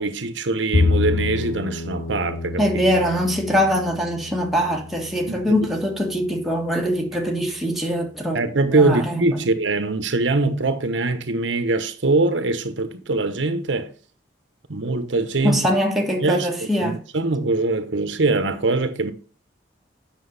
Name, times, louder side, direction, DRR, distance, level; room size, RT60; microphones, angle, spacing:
voice 1, 0.0-2.6 5.3-5.4 8.3-13.9 14.7-15.7 16.2-19.1, right 3 dB, 85° right, 1.1 m, -22 dB
Bowed string instrument, 0.7-7.1, left 3 dB, 85° left, 1.3 m, -28 dB
voice 2, 2.6-8.4 8.7-9.5 15.4-17.0, equal, ahead, 1.6 m, -22 dB
8.1 x 6.0 x 4.1 m
head